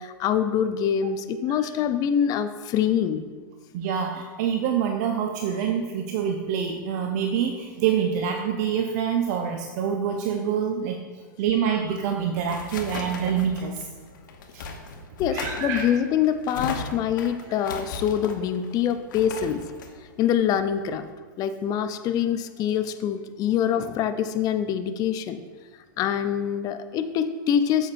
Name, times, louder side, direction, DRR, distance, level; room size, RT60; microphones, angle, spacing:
voice 1, 0.0-3.2 15.2-19.6 20.0-21.1 21.4-25.4 26.0-27.9, left 9 dB, 35° left, 10 dB, 0.5 m, -25 dB
voice 2, 3.7-11.0 11.4-13.9 14.5-14.7 15.3-15.9, right 8 dB, 55° right, 3 dB, 0.7 m, -26 dB
sound 1, 11.9-21.1, left 4 dB, 70° left, 1.1 m, -38 dB
8.6 x 7.3 x 2.6 m, 1.5 s
hypercardioid pair, 100°, 11 cm